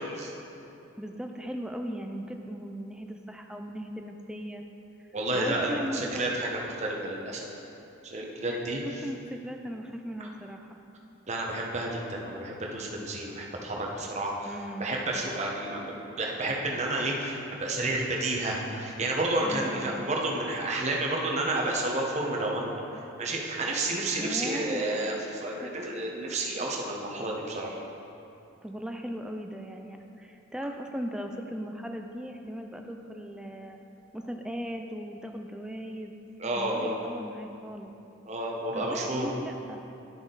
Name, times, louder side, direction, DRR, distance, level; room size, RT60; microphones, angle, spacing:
voice 1, 1.0-4.6 5.3-6.3 8.5-8.7 9.0-10.8 14.5-15.0 19.4-20.0 24.2-24.8 25.5-25.7 28.6-33.8 34.1-36.1 36.6-37.9 38.7-39.8, equal, 5° right, 3 dB, 0.3 m, -38 dB
voice 2, 5.1-7.5 8.0-8.8 11.3-14.5 14.8-27.8 36.4-36.9 38.2-39.3, right 2 dB, 35° right, -1 dB, 1.0 m, -30 dB
11.0 x 5.9 x 3.9 m, 2.9 s
head